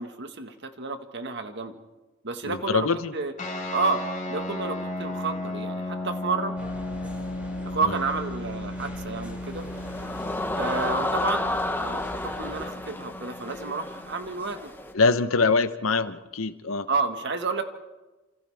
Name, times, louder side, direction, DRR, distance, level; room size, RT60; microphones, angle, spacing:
voice 1, 0.0-1.8 2.2-2.9 3.1-3.3 3.7-4.0 4.3-6.5 7.6-9.7 10.5-14.7 16.9-17.6, right 4 dB, 55° right, 6 dB, 1.7 m, -30 dB
voice 2, 2.4-3.1 7.8-8.0 14.9-16.9, left 4 dB, 85° left, 11 dB, 1.0 m, -24 dB
sound 1, 3.4-14.3, left 1 dB, 35° left, 5.1 m, -35 dB
sound 2, 6.6-12.7, equal, 5° right, 6.2 m, -42 dB
sound 3, 9.4-14.9, left 2 dB, 10° left, 0.9 m, -31 dB
29.5 x 27.0 x 3.5 m, 1.1 s
head